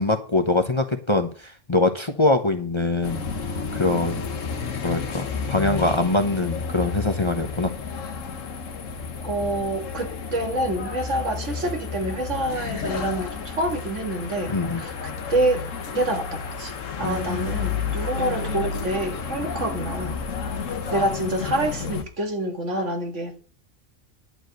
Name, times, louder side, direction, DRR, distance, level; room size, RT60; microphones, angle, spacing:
voice 1, 0.0-3.2 3.7-4.3 4.8-7.7 14.5-14.8 17.0-17.9, left 2 dB, 25° left, 0.9 m, -23 dB
sound 1, 3.0-22.0, left 5 dB, 90° left, 1.5 m, -31 dB
voice 2, 9.2-14.9 15.3-15.7 15.9-16.7 17.0-20.2 20.9-23.4, right 1 dB, 70° right, 2.1 m, -27 dB
11.0 x 4.8 x 8.0 m
omnidirectional pair, 1.3 m